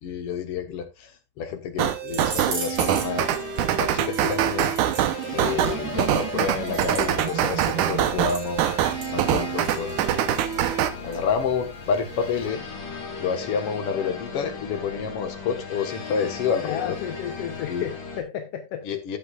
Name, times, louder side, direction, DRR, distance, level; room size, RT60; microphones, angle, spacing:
voice 1, 0.0-3.3 3.8-4.7 5.3-8.6 9.1-10.0 11.0-12.6 13.2-17.0 17.7-17.8 18.8-19.2, left 6 dB, 55° left, 2.2 m, -29 dB
sound 1, 1.8-10.9, right 11 dB, 80° right, 2.4 m, -24 dB
sound 2, 2.1-12.5, right 3 dB, 50° right, 4.1 m, -40 dB
sound 3, 2.8-18.2, left 4 dB, 90° left, 4.2 m, -37 dB
voice 2, 16.6-18.9, left 9 dB, 70° left, 1.6 m, -32 dB
13.5 x 8.2 x 2.4 m
omnidirectional pair, 3.5 m